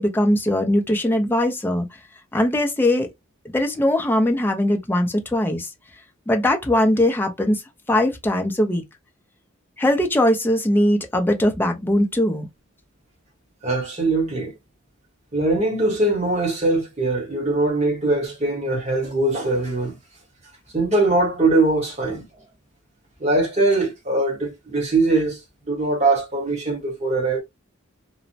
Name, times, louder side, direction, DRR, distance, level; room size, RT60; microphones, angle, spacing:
voice 1, 0.0-1.9 2.3-3.1 3.5-5.7 6.3-7.6 7.9-8.8 9.8-12.5, left 1 dB, 10° left, 0.4 m, -20 dB
voice 2, 13.6-14.5 15.3-20.0 20.7-22.3 23.2-25.4 25.7-27.4, right 2 dB, 35° right, 1.0 m, -21 dB
3.0 x 2.0 x 2.6 m
head